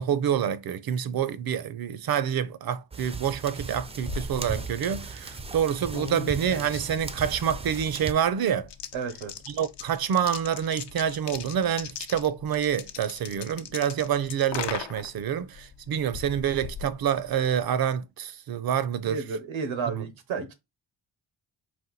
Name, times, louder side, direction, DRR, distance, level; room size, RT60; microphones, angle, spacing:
voice 1, 0.0-8.7 9.5-19.2 19.9-20.1, right 9 dB, 50° right, 0.6 m, -27 dB
sound 1, 2.9-8.1, right 4 dB, 15° right, 0.4 m, -37 dB
sound 2, 3.6-17.7, left 8 dB, 60° left, 0.8 m, -40 dB
voice 2, 8.9-9.3 13.3-13.7 19.0-20.5, right 5 dB, 85° right, 1.1 m, -32 dB
4.3 x 2.5 x 3.9 m
cardioid pair, 70°, 46 cm